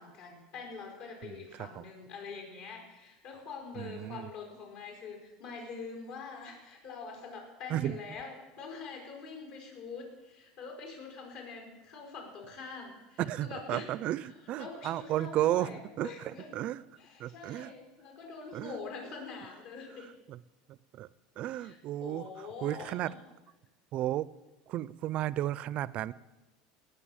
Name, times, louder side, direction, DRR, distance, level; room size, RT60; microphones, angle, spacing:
voice 1, 0.0-13.9 14.2-16.7 17.0-20.1 21.5-23.2, left 4 dB, 65° left, 1 dB, 5.1 m, -45 dB
voice 2, 3.8-4.3 7.7-8.0 13.2-16.8 17.2-17.7 18.5-18.7 20.3-20.4 20.9-21.1 21.4-22.2 22.6-23.1 23.9-24.3 24.7-26.1, right 13 dB, 45° right, 20 dB, 0.4 m, -33 dB
19.0 x 6.8 x 7.2 m, 1.1 s
supercardioid pair, 140°, 3 cm